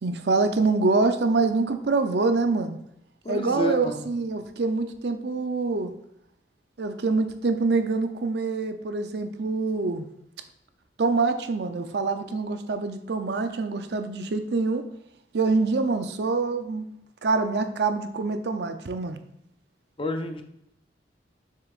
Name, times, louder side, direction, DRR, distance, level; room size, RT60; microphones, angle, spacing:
voice 1, 0.0-2.8 3.3-5.9 6.8-10.1 11.0-14.8 15.3-16.9 17.2-19.2, right 3 dB, 65° right, 8 dB, 0.6 m, -25 dB
voice 2, 3.2-4.0 20.0-20.4, equal, 30° left, 6 dB, 0.6 m, -29 dB
7.0 x 6.7 x 2.5 m, 0.77 s
head